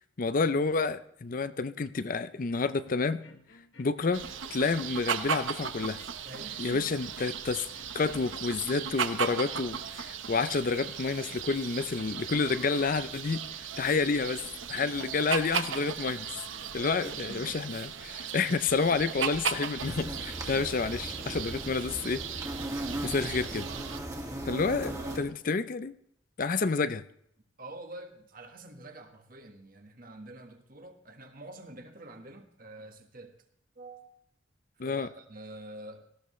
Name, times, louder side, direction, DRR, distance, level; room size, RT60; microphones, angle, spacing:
voice 1, 0.2-3.2 3.8-6.0 6.6-7.7 7.9-13.4 13.8-14.4 14.7-16.3 16.7-22.4 23.0-23.7 24.5-24.9 25.2-25.9 26.4-27.0 34.8-35.1, left 4 dB, 45° left, 14 dB, 0.5 m, -29 dB
sound 1, 2.3-17.6, left 3 dB, 70° left, 1.8 m, -57 dB
sound 2, 4.1-24.0, right 7 dB, 85° right, 1.1 m, -37 dB
voice 2, 6.2-7.1 16.6-18.1 20.5-20.7 24.4-25.3 26.6-26.7 27.6-33.4 33.7-34.1 34.8-36.1, right 2 dB, 45° right, 5 dB, 1.5 m, -46 dB
sound 3, 19.8-25.2, right 1 dB, 20° right, 2.0 m, -38 dB
18.5 x 15.0 x 3.2 m, 0.69 s
head